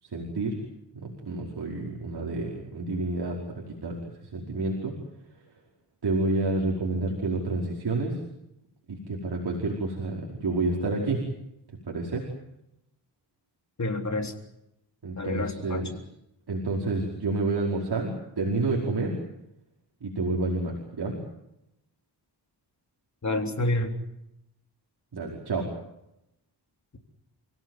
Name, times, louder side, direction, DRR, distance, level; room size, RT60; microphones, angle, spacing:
voice 1, 0.1-0.6 1.0-4.0 4.3-5.0 6.0-8.2 8.9-11.2 11.9-12.3 15.0-16.0 16.5-19.2 20.0-21.2 25.1-25.7, right 2 dB, 65° right, -1 dB, 5.2 m, -29 dB
voice 2, 13.8-14.3 15.2-15.8 23.2-23.9, left 2 dB, 40° left, 4 dB, 3.8 m, -28 dB
29.0 x 17.5 x 9.4 m, 0.84 s
wide cardioid pair, 105°, 42 cm